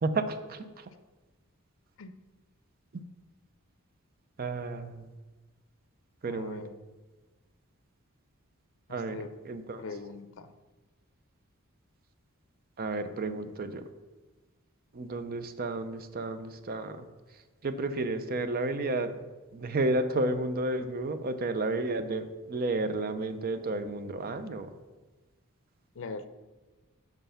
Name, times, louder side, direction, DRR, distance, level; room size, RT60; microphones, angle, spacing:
voice 1, 0.0-0.9 4.4-5.1 6.2-6.6 8.9-9.2 9.5-9.8 12.8-13.8 14.9-17.1 17.6-19.1 19.5-24.7, right 2 dB, 45° right, 10 dB, 0.5 m, -32 dB
voice 2, 6.3-6.8 8.9-9.3 9.8-10.5 25.9-26.3, left 4 dB, 65° left, 11 dB, 0.5 m, -41 dB
6.0 x 5.6 x 5.6 m, 1.2 s
head